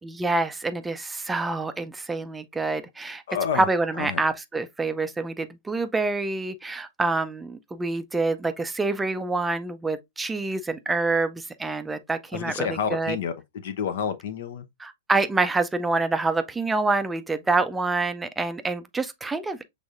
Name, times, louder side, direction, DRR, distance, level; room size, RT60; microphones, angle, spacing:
voice 1, 0.0-3.2 3.5-13.2 14.8-19.6, right 3 dB, 10° right, 0.4 m, -27 dB
voice 2, 3.3-3.7 4.0-4.2 12.3-14.6, left 7 dB, 60° left, 0.7 m, -29 dB
6.2 x 3.4 x 2.4 m
figure-of-eight pair, 105°, 0 cm